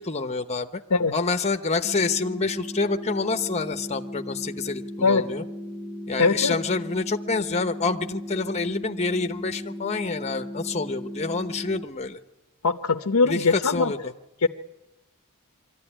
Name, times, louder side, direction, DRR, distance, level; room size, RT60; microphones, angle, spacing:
voice 1, 0.0-0.8 1.1-5.4 6.1-12.2 13.2-14.1, left 4 dB, 30° left, 7 dB, 0.9 m, -27 dB
sound 1, 1.8-11.9, left 1 dB, ahead, 0.8 m, -37 dB
voice 2, 6.2-6.5 12.6-13.9 14.4-14.5, left 4 dB, 85° left, 7 dB, 0.8 m, -21 dB
23.5 x 14.0 x 10.0 m, 0.99 s
head